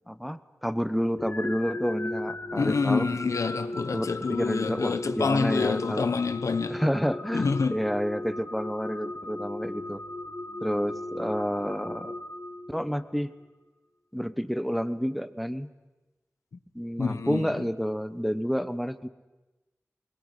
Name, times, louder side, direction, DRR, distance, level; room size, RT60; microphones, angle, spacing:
voice 1, 0.0-3.1 3.9-6.1 6.7-10.0 10.6-12.2 12.7-13.3 14.1-15.7 16.7-19.1, equal, ahead, 0.9 m, -29 dB
sound 1, 1.2-13.2, left 2 dB, 45° left, 1.4 m, -37 dB
voice 2, 2.6-6.8 7.3-7.8 17.0-17.7, left 4 dB, 90° left, 1.1 m, -27 dB
21.5 x 19.5 x 9.9 m
wide cardioid pair, 85°, 5 cm